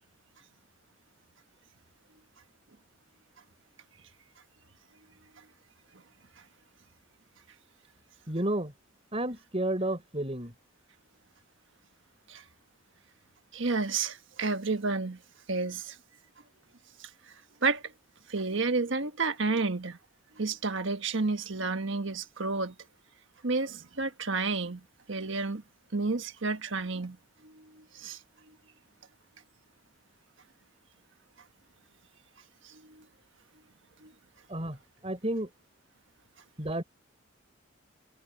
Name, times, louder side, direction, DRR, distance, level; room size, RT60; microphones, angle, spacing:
voice 1, 8.3-8.7 9.1-10.5 34.5-35.5 36.6-36.8, right 1 dB, 30° right, 6.1 m, -31 dB
voice 2, 13.5-15.2 15.5-16.0 17.0-17.1 17.6-17.9 18.3-20.0 20.4-22.7 23.4-24.8 25.1-25.6 25.9-27.2 27.4-28.2 32.6-33.0 34.0-34.1, right 3 dB, 65° right, 1.4 m, -31 dB
head